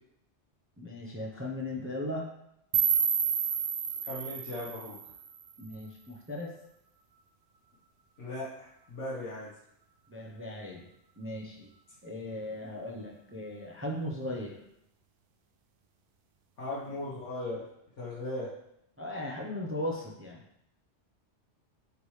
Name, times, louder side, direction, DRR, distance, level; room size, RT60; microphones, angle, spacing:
voice 1, 0.8-2.3 5.6-6.5 10.1-10.8 11.2-11.7 12.0-14.6 19.0-20.4, left 1 dB, 15° right, -2 dB, 0.6 m, -37 dB
sound 1, 2.7-5.7, right 7 dB, 60° right, 0.6 m, -30 dB
voice 2, 4.0-5.0 8.2-9.5 16.6-17.6 18.0-18.5, left 1 dB, 85° left, -7 dB, 1.6 m, -38 dB
9.5 x 3.4 x 3.2 m, 0.78 s
omnidirectional pair, 1.2 m